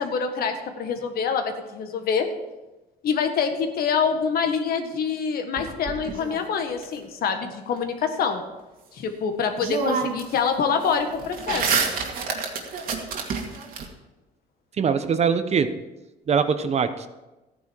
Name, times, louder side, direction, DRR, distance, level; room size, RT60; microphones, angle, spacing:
voice 1, 0.0-2.3 3.0-8.4 8.9-11.6, left 6 dB, 65° left, 6 dB, 1.7 m, -25 dB
sound 1, 5.6-6.8 9.1-9.2 9.6-10.4 10.7-13.8, right 5 dB, 60° right, 2.2 m, -28 dB
voice 2, 14.8-15.7 16.3-17.1, right 6 dB, 40° right, 10 dB, 0.9 m, -22 dB
14.0 x 9.6 x 4.7 m, 1.1 s
cardioid pair, 110°, 17 cm